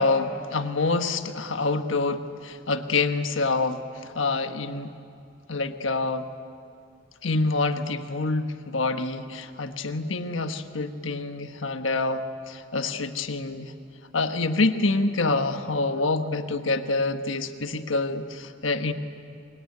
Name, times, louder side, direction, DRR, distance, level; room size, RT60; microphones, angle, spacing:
voice 1, 0.0-5.0 5.5-6.3 7.2-13.7 14.1-18.9, left 3 dB, 75° left, 7 dB, 1.4 m, -26 dB
25.0 x 22.5 x 9.6 m, 2.4 s
head